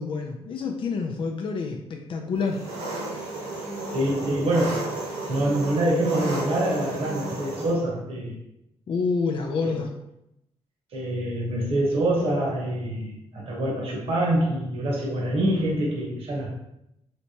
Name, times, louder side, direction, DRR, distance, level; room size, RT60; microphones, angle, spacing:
voice 1, 0.0-2.6 8.9-9.9, left 4 dB, 50° left, 2 dB, 0.4 m, -28 dB
Engine, 2.5-7.7, right 2 dB, 85° right, 1.3 m, -33 dB
voice 2, 3.9-5.0 5.3-8.4 9.6-9.8 10.9-16.5, right 1 dB, 60° right, -3 dB, 1.1 m, -25 dB
3.3 x 2.9 x 2.8 m, 0.83 s
cardioid pair, 95°, 11 cm